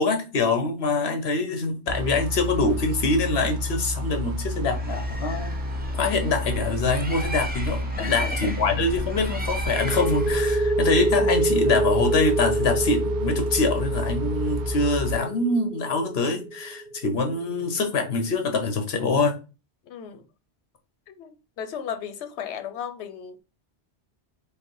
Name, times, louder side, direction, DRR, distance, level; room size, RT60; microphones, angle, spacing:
voice 1, 0.0-5.5 5.9-19.4, left 3 dB, 65° left, 1.1 m, -24 dB
sound 1, 1.9-15.2, left 1 dB, 80° right, 0.9 m, -30 dB
Bird, 4.6-10.7, right 1 dB, 10° right, 0.6 m, -35 dB
voice 2, 8.0-8.5 19.9-20.2 21.1-21.3 21.6-23.3, left 8 dB, 90° left, 0.9 m, -35 dB
sound 2, 9.7-17.2, right 2 dB, 45° right, 0.7 m, -26 dB
5.1 x 2.0 x 4.7 m
omnidirectional pair, 1.1 m